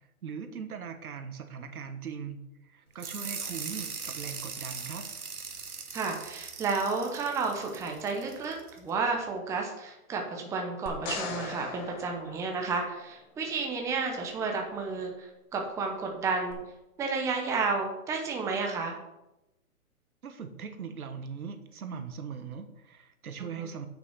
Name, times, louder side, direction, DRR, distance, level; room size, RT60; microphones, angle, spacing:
voice 1, 0.2-5.1 20.2-23.9, right 6 dB, 75° right, 8 dB, 1.5 m, -40 dB
sound 1, 3.0-8.8, right 5 dB, 90° right, 1.9 m, -40 dB
voice 2, 5.9-16.6 17.0-19.0 23.4-23.7, right 4 dB, 5° right, 1 dB, 0.8 m, -32 dB
sound 2, 10.9-13.2 16.5-16.6, left 4 dB, 30° left, 1.9 m, -39 dB
9.1 x 6.2 x 5.8 m, 0.94 s
hypercardioid pair, 145°, 44 cm